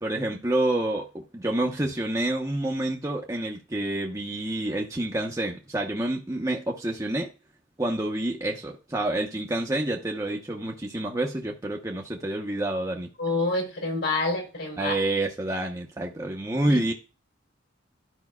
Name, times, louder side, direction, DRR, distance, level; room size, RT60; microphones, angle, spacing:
voice 1, 0.0-7.3 7.8-13.1 14.8-16.9, right 1 dB, 15° right, 0.8 m, -28 dB
voice 2, 13.2-14.9 16.7-16.8, left 2 dB, 75° left, 3.5 m, -27 dB
13.0 x 5.3 x 2.3 m
head